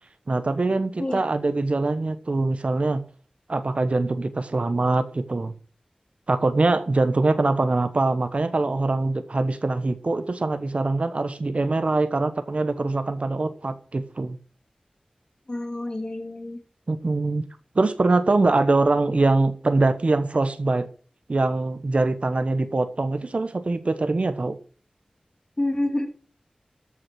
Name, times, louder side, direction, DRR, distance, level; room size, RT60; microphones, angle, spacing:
voice 1, 0.3-3.0 3.5-5.5 6.3-14.4 16.9-17.4 17.7-20.9 21.3-24.6, right 2 dB, 60° right, 1.2 m, -23 dB
voice 2, 15.5-16.6 25.6-26.1, left 1 dB, 35° left, 2.5 m, -28 dB
14.0 x 6.2 x 6.3 m
wide cardioid pair, 75°, 2 cm